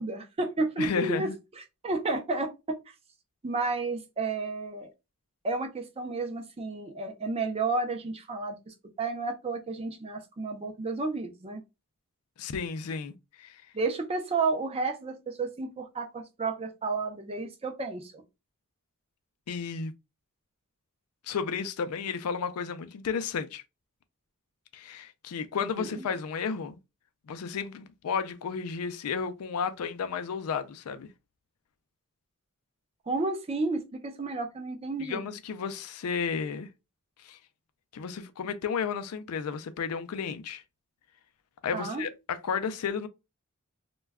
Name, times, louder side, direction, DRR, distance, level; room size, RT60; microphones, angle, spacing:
voice 1, 0.0-1.3 1.6-2.5 3.4-4.9 5.4-11.6 13.7-18.2 25.8-26.1 33.1-35.3 41.7-42.0, right 3 dB, 25° right, 0.5 m, -32 dB
voice 2, 0.8-1.3 12.4-13.6 19.5-19.9 21.2-23.6 24.7-26.8 27.3-31.1 35.0-36.7 37.2-37.4 37.9-40.6 41.6-43.1, left 6 dB, 75° left, 0.4 m, -33 dB
2.2 x 2.2 x 3.3 m
head